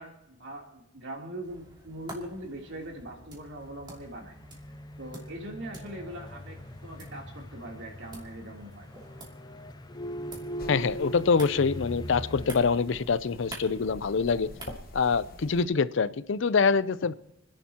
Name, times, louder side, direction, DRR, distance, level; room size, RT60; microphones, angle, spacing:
voice 1, 0.0-4.3 5.0-8.9, right 1 dB, 65° right, 3.2 m, -41 dB
sound 1, 1.4-15.4, right 2 dB, 25° right, 2.7 m, -49 dB
sound 2, 4.3-12.5, equal, 20° left, 0.5 m, -40 dB
sound 3, 10.6-15.7, left 1 dB, 50° left, 1.2 m, -47 dB
voice 2, 10.7-14.5 14.9-17.1, left 5 dB, 65° left, 0.5 m, -25 dB
29.5 x 10.5 x 2.9 m
head